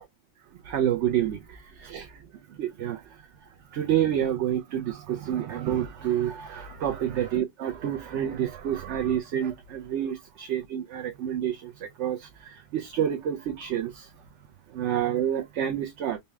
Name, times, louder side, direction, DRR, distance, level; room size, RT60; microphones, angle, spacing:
voice 1, 0.6-2.1 2.6-3.0 3.7-14.1 14.7-16.2, right 10 dB, 75° right, 0.9 m, -28 dB
4.1 x 2.2 x 3.3 m
omnidirectional pair, 1.2 m